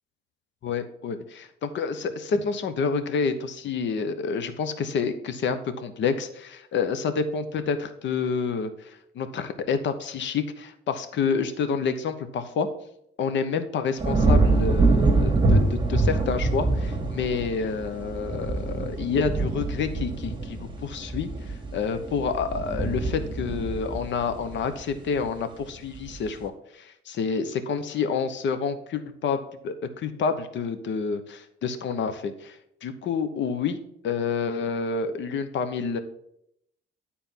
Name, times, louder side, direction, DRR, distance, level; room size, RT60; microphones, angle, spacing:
voice 1, 0.6-12.7 13.2-21.3 21.7-29.4 29.6-33.8 34.0-36.0, left 5 dB, 70° left, 10 dB, 0.9 m, -28 dB
sound 1, 14.0-25.3 25.7-26.2, right 3 dB, 25° right, 1.6 m, -25 dB
9.4 x 4.3 x 5.7 m, 0.76 s
cardioid pair, 90°, 20 cm